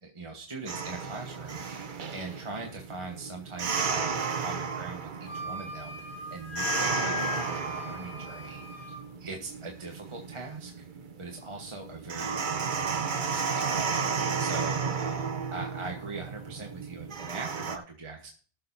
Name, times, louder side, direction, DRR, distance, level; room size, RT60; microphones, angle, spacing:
voice 1, 0.0-10.8 11.2-18.3, right 3 dB, 30° right, 1 dB, 1.3 m, -41 dB
sound 1, 0.7-17.8, right 6 dB, 55° right, 0.9 m, -33 dB
Wind instrument woodwind instrument, 5.2-9.0, left 6 dB, 45° left, 4.9 m, -37 dB
19.5 x 6.7 x 2.7 m, 0.41 s
omnidirectional pair, 1.1 m